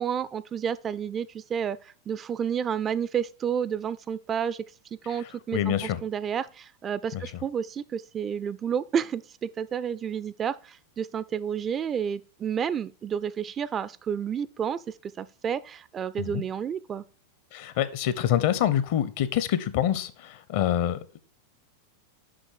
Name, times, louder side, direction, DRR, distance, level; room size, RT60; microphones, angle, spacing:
voice 1, 0.0-4.6 5.1-17.0, right 8 dB, 25° right, 0.3 m, -30 dB
voice 2, 5.2-6.0 7.1-7.3 16.2-16.4 17.5-21.0, left 11 dB, 50° left, 0.7 m, -26 dB
6.1 x 5.6 x 4.5 m
figure-of-eight pair, 90°, 0 cm